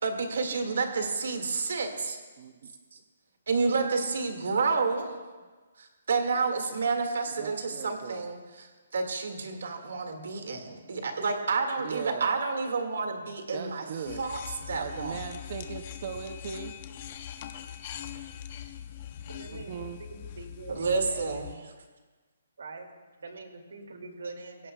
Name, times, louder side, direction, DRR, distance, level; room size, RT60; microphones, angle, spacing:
voice 1, 0.0-2.2 3.5-5.2 5.8-8.7 8.9-13.9 14.2-15.2 20.7-21.5, right 4 dB, 65° right, 5 dB, 1.8 m, -29 dB
voice 2, 2.4-2.7 7.3-8.3 11.8-12.3 13.5-14.2 14.8-16.8 19.2-20.0, right 7 dB, 30° right, 7 dB, 0.5 m, -39 dB
sound 1, 14.1-21.6, left 10 dB, 25° left, 0.6 m, -42 dB
voice 3, 19.3-21.3 22.6-22.9 23.2-24.7, right 3 dB, 85° right, 4 dB, 2.2 m, -43 dB
21.5 x 17.0 x 2.2 m, 1.3 s
hypercardioid pair, 180°, 0 cm